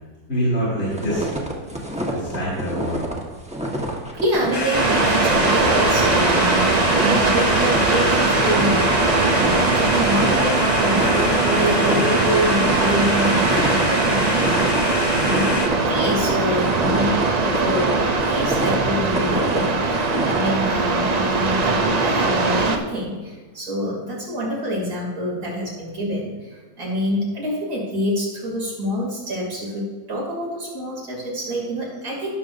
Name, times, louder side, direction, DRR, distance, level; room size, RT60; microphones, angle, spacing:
voice 1, 0.3-1.2 1.6-1.8 2.1-3.0, equal, 75° left, -7 dB, 3.8 m, -25 dB
sound 1, 0.9-20.5, right 1 dB, 5° right, 1.1 m, -28 dB
voice 2, 4.1-14.7 15.2-15.5 15.9-18.0 18.3-32.4, equal, 85° right, -4 dB, 3.4 m, -26 dB
sound 2, 4.5-15.7, left 2 dB, 20° left, 0.7 m, -27 dB
sound 3, 4.7-22.8, right 3 dB, 45° right, 0.5 m, -20 dB
16.5 x 6.8 x 2.6 m, 1.3 s
omnidirectional pair, 1.6 m